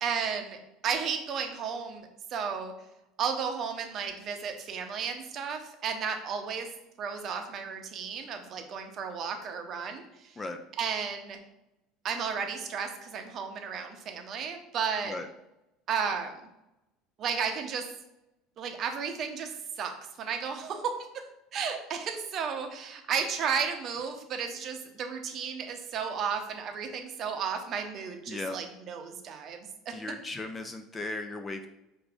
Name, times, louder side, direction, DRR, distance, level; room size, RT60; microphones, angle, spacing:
voice 1, 0.0-0.6 0.8-2.7 3.2-6.7 7.0-10.0 10.8-11.4 12.0-15.2 15.9-16.3 17.2-17.8 18.6-19.5 19.8-20.9 21.5-29.9, right 6 dB, 40° right, 5 dB, 0.6 m, -33 dB
voice 2, 29.9-31.7, left 2 dB, 15° left, 7 dB, 0.3 m, -36 dB
5.8 x 2.6 x 3.4 m, 0.89 s
cardioid pair, 140°, 0 cm